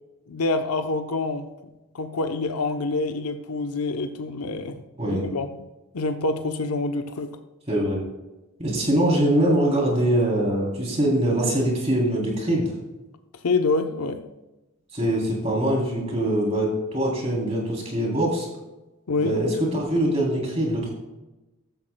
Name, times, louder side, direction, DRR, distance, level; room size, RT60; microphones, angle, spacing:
voice 1, 0.3-1.5 1.9-4.8 5.1-5.7 5.9-7.4 13.4-14.3 19.1-19.4, left 3 dB, 85° left, 7 dB, 0.7 m, -26 dB
voice 2, 7.7-8.0 8.6-12.7 14.9-18.5 19.2-20.9, right 1 dB, 30° right, -2 dB, 3.0 m, -23 dB
15.0 x 12.5 x 2.2 m, 1.0 s
head